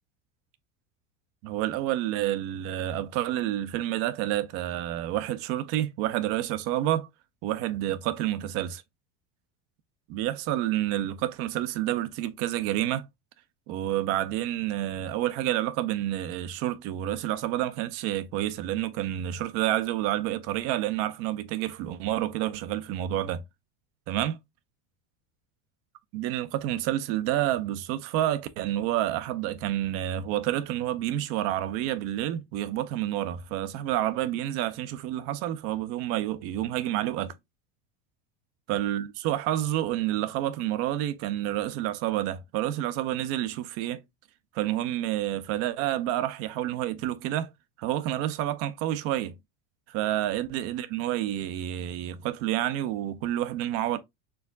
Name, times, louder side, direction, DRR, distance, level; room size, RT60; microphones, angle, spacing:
voice 1, 1.4-7.1 7.4-8.8 10.1-13.1 13.7-23.4 24.1-24.4 26.1-37.3 38.7-44.0 44.5-47.5 47.8-49.3 49.9-54.0, right 13 dB, 40° right, 0.4 m, -29 dB
4.5 x 3.5 x 2.2 m
supercardioid pair, 160°, 39 cm